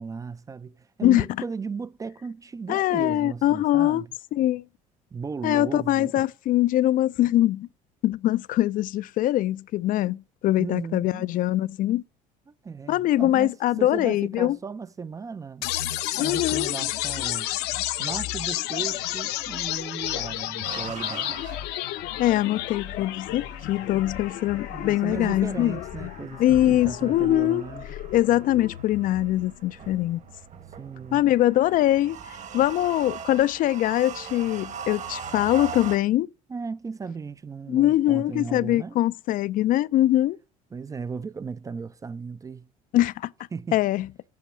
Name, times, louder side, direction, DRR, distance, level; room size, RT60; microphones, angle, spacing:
voice 1, 0.0-4.1 5.1-6.2 10.6-11.3 12.5-15.7 16.2-17.5 18.0-21.7 24.7-27.8 30.8-31.3 36.5-39.0 40.7-42.7 43.5-43.8, right 5 dB, 20° right, 0.4 m, -36 dB
voice 2, 2.7-4.1 4.3-4.6 5.4-7.7 8.0-12.0 12.9-14.6 16.2-16.7 22.2-26.1 26.4-27.6 28.1-30.2 31.1-32.2 32.5-36.3 37.7-40.4 42.9-43.3 43.7-44.1, left 14 dB, 55° left, 0.4 m, -23 dB
sound 1, 15.6-29.6, left 15 dB, 75° left, 0.8 m, -32 dB
sound 2, 20.6-36.0, right 7 dB, 45° right, 1.4 m, -41 dB
8.4 x 5.1 x 5.9 m
supercardioid pair, 90°, 17 cm